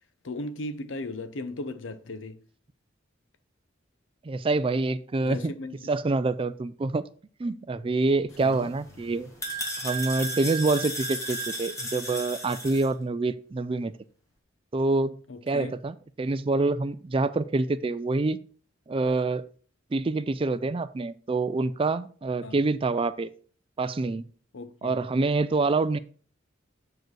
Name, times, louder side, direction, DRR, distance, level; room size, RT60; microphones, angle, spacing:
voice 1, 0.2-2.4 5.2-5.7 8.4-8.7 15.3-15.7 22.4-22.6 24.5-25.0, left 2 dB, 70° left, 0.7 m, -36 dB
voice 2, 4.2-5.5 5.9-7.0 7.4-9.3 9.8-13.9 14.7-15.2 15.5-18.4 18.9-19.5 19.9-23.3 23.8-24.2 24.8-26.0, right 3 dB, 25° right, 0.4 m, -26 dB
sound 1, 8.3-12.9, right 1 dB, 15° left, 1.8 m, -35 dB
7.7 x 4.8 x 4.7 m
head